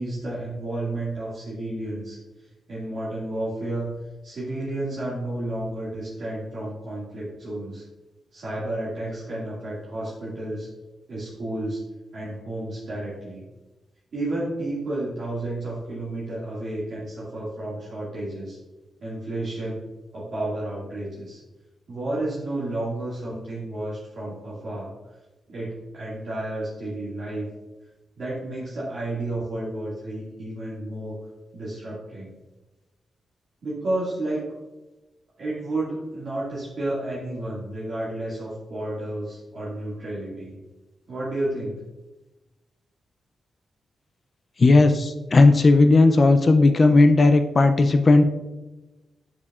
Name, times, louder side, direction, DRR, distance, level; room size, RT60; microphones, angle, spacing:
voice 1, 0.0-2.2 2.7-4.0 4.2-7.8 8.3-10.7 11.1-11.8 12.1-13.5 14.1-18.6 19.0-19.8 20.1-21.4 21.9-24.9 25.5-27.5 28.2-31.1 31.5-32.4 33.6-34.4 35.4-40.6 41.1-41.8, right 1 dB, 55° right, -8 dB, 1.9 m, -31 dB
voice 2, 44.6-48.2, left 3 dB, 30° left, 8 dB, 0.3 m, -16 dB
8.4 x 4.9 x 2.3 m, 1.1 s
wide cardioid pair, 155°, 0 cm